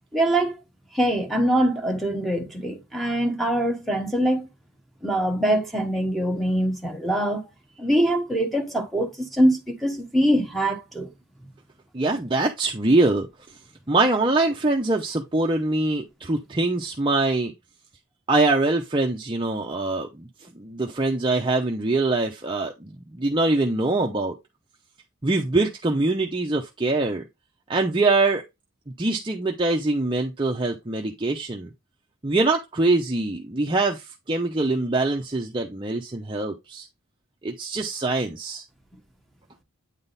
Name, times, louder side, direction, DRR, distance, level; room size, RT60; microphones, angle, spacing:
voice 1, 0.1-0.6 0.9-4.5 5.0-7.5 7.8-11.1, right 1 dB, ahead, 1.1 m, -23 dB
voice 2, 11.9-13.3 13.9-17.5 18.3-20.3 20.6-24.3 25.2-27.2 27.7-28.4 29.0-31.7 32.2-36.9 37.4-38.6, right 2 dB, 20° right, 0.6 m, -23 dB
8.9 x 3.7 x 4.1 m
head